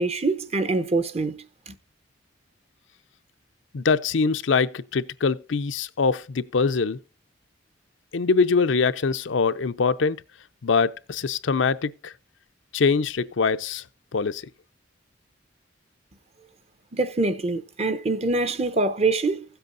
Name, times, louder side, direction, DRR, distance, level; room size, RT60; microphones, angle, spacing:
voice 1, 0.0-1.7 16.9-19.4, right 3 dB, 30° right, 0.8 m, -25 dB
voice 2, 3.7-7.0 8.1-10.2 10.6-12.1 12.7-13.8 14.1-14.5, left 4 dB, 70° left, 0.5 m, -23 dB
16.5 x 7.9 x 2.6 m
head